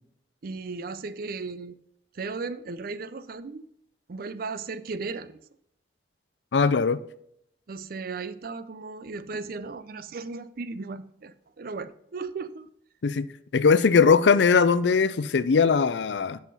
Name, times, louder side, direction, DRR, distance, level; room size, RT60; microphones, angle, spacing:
voice 1, 0.4-1.7 2.1-3.7 4.1-5.4 7.7-12.7, right 4 dB, 55° right, 14 dB, 0.5 m, -36 dB
voice 2, 6.5-7.0 13.0-13.3 13.5-16.4, left 5 dB, 80° left, 16 dB, 0.5 m, -20 dB
7.5 x 5.6 x 5.4 m, 0.73 s
head